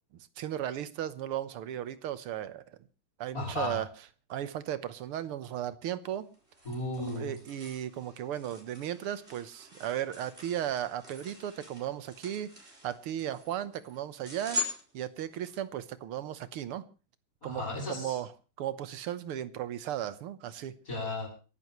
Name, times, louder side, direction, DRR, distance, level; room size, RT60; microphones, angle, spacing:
voice 1, 0.4-2.6 3.2-3.9 4.3-6.3 7.1-14.6 14.9-16.8 17.4-18.3 18.6-20.8, right 11 dB, 85° right, 1.9 m, -36 dB
voice 2, 3.3-3.8 6.6-7.4 17.4-18.2 20.9-21.3, left 2 dB, 40° left, 8.1 m, -35 dB
sound 1, 6.1-15.6, left 1 dB, 30° right, 4.9 m, -43 dB
28.5 x 11.5 x 3.1 m
omnidirectional pair, 2.3 m